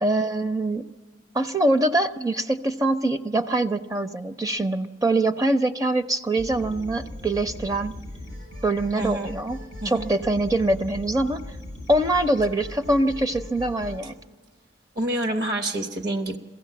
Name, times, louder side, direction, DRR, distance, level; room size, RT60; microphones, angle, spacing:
voice 1, 0.0-0.9 1.3-7.9 8.6-11.4 11.9-14.2, right 2 dB, 20° right, 9 dB, 0.5 m, -24 dB
sound 1, 6.4-14.0, left 1 dB, 90° right, 5.8 m, -39 dB
voice 2, 8.9-9.4 9.8-10.1 14.9-16.4, right 1 dB, 60° right, 7 dB, 1.0 m, -27 dB
22.5 x 15.5 x 7.5 m, 1.5 s
head